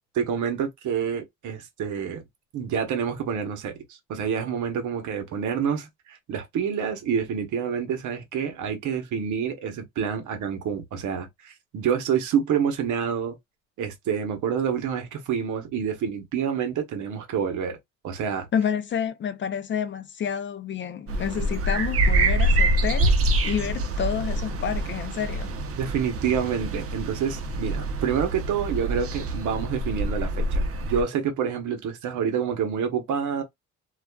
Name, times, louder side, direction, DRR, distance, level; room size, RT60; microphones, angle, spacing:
voice 1, 0.1-2.2 2.5-13.4 13.8-17.8 18.0-18.5 25.8-33.4, right 7 dB, 75° right, 0.9 m, -28 dB
voice 2, 18.5-23.1 23.4-25.5, left 8 dB, 40° left, 0.4 m, -29 dB
sound 1, 21.1-31.0, right 1 dB, 50° right, 0.6 m, -25 dB
2.3 x 2.3 x 2.2 m
cardioid pair, 90°, 30 cm